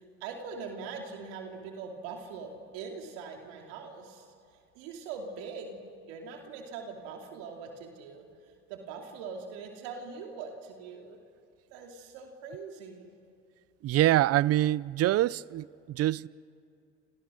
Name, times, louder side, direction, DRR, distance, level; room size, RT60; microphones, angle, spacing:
voice 1, 0.0-4.3 4.7-11.2 11.7-13.1, right 5 dB, 75° right, 2.9 m, -42 dB
voice 2, 13.8-16.3, right 14 dB, 50° right, 0.6 m, -25 dB
28.0 x 28.0 x 6.4 m
hypercardioid pair, 70°, 32 cm